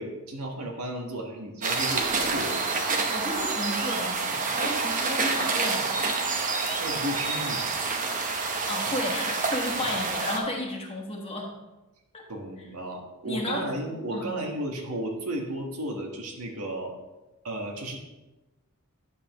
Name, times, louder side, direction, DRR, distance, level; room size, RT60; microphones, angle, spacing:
voice 1, 0.0-2.7 6.8-7.7 9.8-9.9 12.3-16.9 17.4-18.0, right 1 dB, 85° right, 1 dB, 1.5 m, -34 dB
sound 1, 1.6-10.4, right 4 dB, 35° right, 0.9 m, -28 dB
voice 2, 3.1-5.9 8.1-11.5 12.1-12.3 13.2-13.7 14.1-14.2, left 1 dB, 25° left, -1 dB, 1.4 m, -33 dB
9.9 x 7.2 x 3.0 m, 1.1 s
head